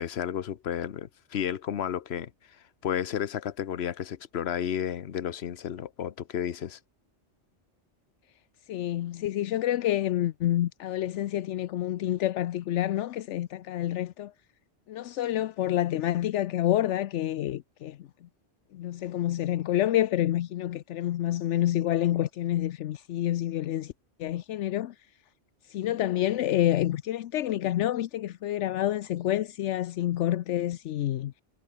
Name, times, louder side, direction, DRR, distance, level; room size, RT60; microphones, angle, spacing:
voice 1, 0.0-2.3 2.8-6.8, left 9 dB, 65° left, 1.1 m, -32 dB
voice 2, 8.7-14.3 14.9-18.1 18.7-23.9 24.2-24.9 25.7-31.3, left 13 dB, 80° left, 0.9 m, -28 dB
omnidirectional pair, 1.2 m